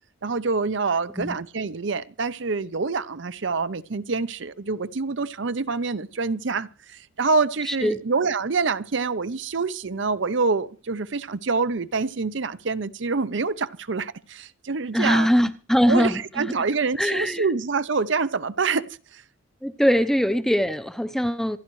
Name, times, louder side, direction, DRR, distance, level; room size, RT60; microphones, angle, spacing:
voice 1, 0.2-15.3 15.9-18.8 19.1-19.2, right 4 dB, 65° right, 0.7 m, -26 dB
voice 2, 7.7-8.0 14.9-16.5 17.0-17.5 19.6-21.6, equal, ahead, 0.7 m, -22 dB
27.0 x 11.0 x 3.2 m
head